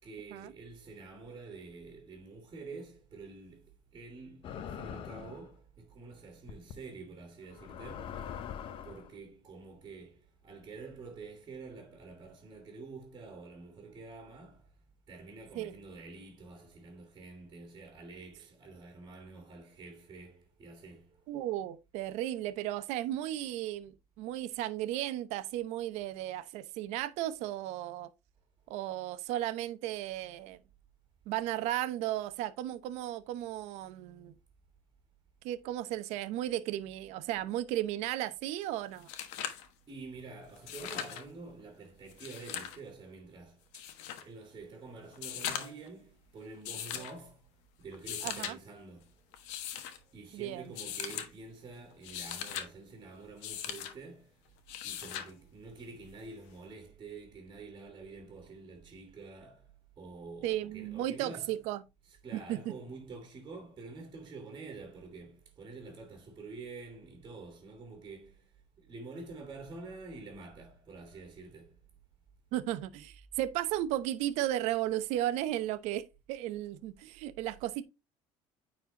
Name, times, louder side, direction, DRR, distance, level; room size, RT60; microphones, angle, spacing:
voice 1, 0.0-8.3 8.8-14.7 15.1-21.2 39.4-39.5 39.9-43.9 44.2-47.5 47.8-49.1 50.1-54.4 54.8-59.7 60.0-61.7 62.0-68.5 68.8-71.7, right 3 dB, 30° right, 2.3 m, -48 dB
sound 1, 4.4-5.5 6.5-6.7 7.5-9.1, left 8 dB, 50° left, 0.8 m, -42 dB
voice 2, 21.3-28.1 28.7-30.6 31.3-34.3 35.4-39.1 48.2-48.6 50.3-50.6 60.4-61.8 62.3-62.7 72.5-77.8, right 13 dB, 75° right, 0.8 m, -35 dB
sound 2, 38.6-38.7 39.0-39.7 40.6-41.2 42.1-42.8 43.7-44.2 45.1-45.9 46.6-47.1 47.9-48.5 49.3-50.0 50.7-51.3 51.9-52.7 53.4-53.9 54.7-55.3 56.7-56.8, left 10 dB, 80° left, 1.2 m, -39 dB
9.4 x 4.2 x 2.9 m
cardioid pair, 125°, 12 cm